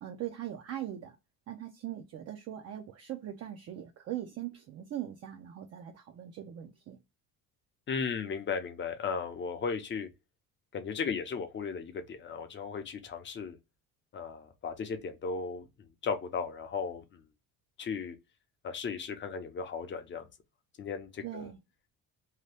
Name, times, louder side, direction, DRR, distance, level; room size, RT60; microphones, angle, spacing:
voice 1, 0.0-1.2 1.5-7.0 21.2-21.6, right 12 dB, 45° right, 0.5 m, -40 dB
voice 2, 7.9-10.1 10.7-13.6 14.1-15.6 16.0-17.0 17.8-18.2 18.6-20.2 20.8-21.5, left 5 dB, 30° left, 0.6 m, -36 dB
2.8 x 2.2 x 3.2 m
cardioid pair, 135°, 36 cm